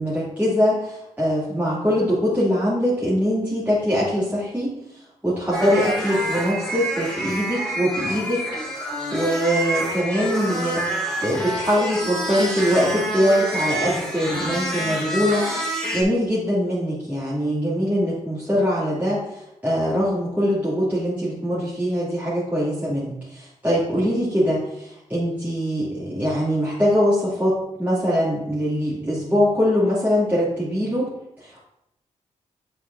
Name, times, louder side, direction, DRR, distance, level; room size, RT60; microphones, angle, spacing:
voice 1, 0.0-4.8 5.2-8.4 9.1-15.5 15.9-19.2 19.6-31.1 31.4-31.6, equal, 10° right, -10 dB, 2.7 m, -22 dB
sound 1, 5.5-16.0, right 1 dB, 5° left, 2.4 m, -27 dB
7.5 x 6.4 x 2.7 m, 0.82 s
cardioid pair, 60°, 13 cm